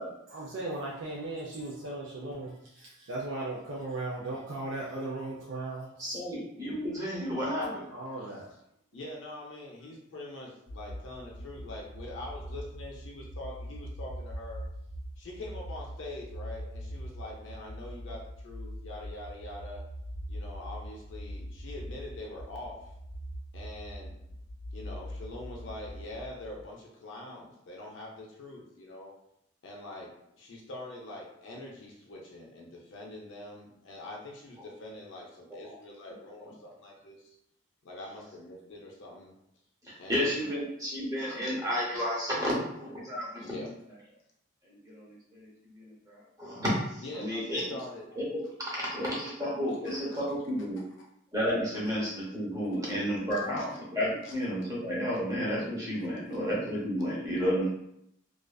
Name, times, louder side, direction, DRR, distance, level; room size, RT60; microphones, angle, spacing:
voice 1, 0.3-6.2 7.9-8.5, right 2 dB, 65° right, -5 dB, 0.4 m, -37 dB
voice 2, 6.0-7.8 35.6-35.7 39.8-43.7 44.7-47.7 48.2-48.4 48.7-50.8 51.3-57.7, equal, 15° right, -5 dB, 0.7 m, -32 dB
voice 3, 8.9-14.6 15.2-19.8 20.3-22.9 23.5-24.1 24.7-29.1 29.6-37.4 37.8-39.3 40.0-40.4 43.4-43.7 47.0-48.1 49.8-50.0 52.8-52.9 53.3-53.7 54.2-54.4 56.3-56.4, left 2 dB, 65° left, -2 dB, 0.5 m, -44 dB
sound 1, 10.7-26.6, equal, 85° right, 1.1 m, -42 dB
2.4 x 2.3 x 2.3 m, 0.78 s
head